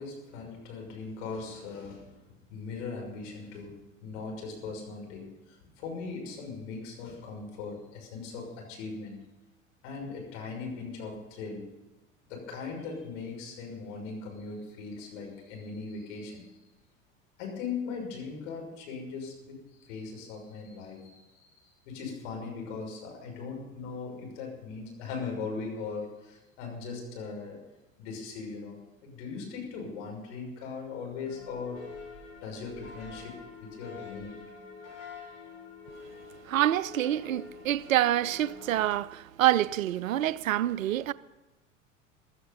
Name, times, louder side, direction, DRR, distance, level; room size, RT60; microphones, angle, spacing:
voice 1, 0.0-2.2 2.5-9.2 9.8-11.7 12.3-16.5 17.4-27.6 28.0-31.9 32.4-34.4, left 4 dB, 65° left, 6.2 m, -39 dB
sound 1, 31.2-38.9, left 5 dB, 85° left, 4.4 m, -47 dB
voice 2, 36.4-41.1, right 13 dB, 80° right, 0.6 m, -27 dB
15.5 x 13.5 x 5.5 m
hypercardioid pair, 75°, 39 cm